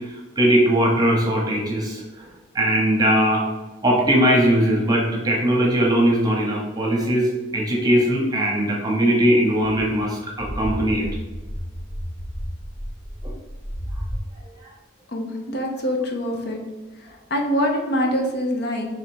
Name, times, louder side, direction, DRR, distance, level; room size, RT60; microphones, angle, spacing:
voice 1, 0.0-2.3 2.5-3.4 3.8-11.0 13.2-13.3, right 1 dB, 20° right, -2 dB, 1.0 m, -20 dB
sound 1, 10.2-14.2, equal, 20° left, 0.8 m, -32 dB
voice 2, 15.1-16.6 17.3-18.9, equal, 55° left, 2 dB, 0.6 m, -24 dB
3.3 x 3.2 x 4.7 m, 1.2 s
head